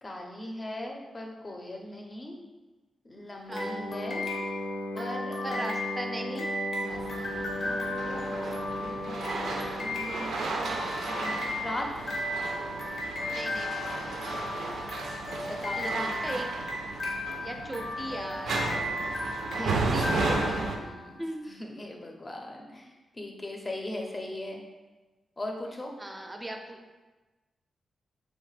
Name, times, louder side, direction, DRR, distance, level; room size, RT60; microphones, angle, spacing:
voice 1, 0.0-2.4 3.0-4.3 4.9-5.7 6.8-8.5 8.8-9.4 9.7-11.9 15.5-16.3 19.5-22.9 23.1-24.6 25.4-25.9, left 1 dB, 30° left, 1 dB, 0.5 m, -40 dB
Wind instrument woodwind instrument, 3.5-10.1, left 1 dB, 90° left, 1.1 m, -37 dB
sound 1, 3.5-21.2, left 1 dB, 70° left, 0.7 m, -36 dB
voice 2, 3.5-3.8 5.4-6.5 13.2-14.2 15.7-16.5 17.3-18.6 19.9-20.7 21.2-21.5 26.0-26.8, right 1 dB, 20° right, 3 dB, 0.4 m, -38 dB
sound 2, 6.9-20.8, right 3 dB, 90° right, 0.3 m, -34 dB
3.1 x 2.1 x 3.2 m, 1.2 s
cardioid pair, 65°, 0 cm